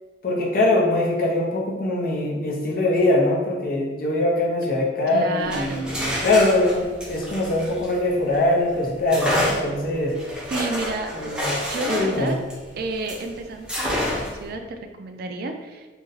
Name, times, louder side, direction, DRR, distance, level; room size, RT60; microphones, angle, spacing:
voice 1, 0.2-10.2 11.1-11.5 11.9-12.4, left 2 dB, 50° left, -1 dB, 0.7 m, -22 dB
voice 2, 5.1-6.0 10.5-11.3 11.6-12.4 12.8-15.9, right 3 dB, 55° right, 5 dB, 0.3 m, -31 dB
sound 1, 5.4-8.4 9.1-13.3 13.7-14.5, left 1 dB, 5° right, 0.6 m, -28 dB
2.8 x 2.6 x 3.9 m, 1.3 s
head